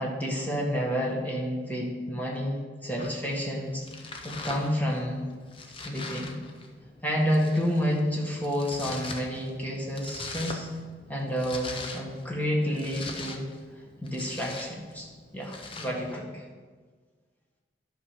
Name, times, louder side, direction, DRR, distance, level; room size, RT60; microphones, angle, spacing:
voice 1, 0.0-3.9 4.2-5.2 5.8-6.3 7.0-10.7 11.1-13.5 14.0-15.1 15.3-16.4, equal, 10° left, -3 dB, 1.9 m, -29 dB
Domestic sounds home sounds, 3.0-16.2, left 3 dB, 30° left, 0.8 m, -43 dB
11.5 x 6.0 x 5.1 m, 1.5 s
head